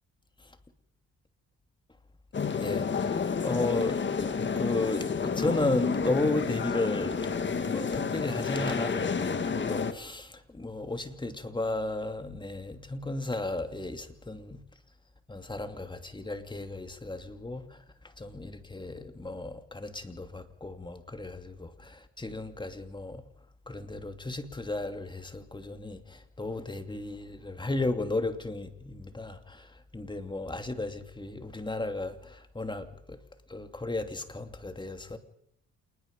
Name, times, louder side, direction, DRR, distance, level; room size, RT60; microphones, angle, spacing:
sound 1, 2.3-9.9, left 5 dB, 40° left, 1.9 m, -30 dB
voice 1, 2.4-14.6 15.3-23.2 23.7-33.2 33.5-35.2, left 2 dB, 15° left, 2.7 m, -34 dB
28.0 x 20.5 x 5.3 m
cardioid pair, 90°, 30 cm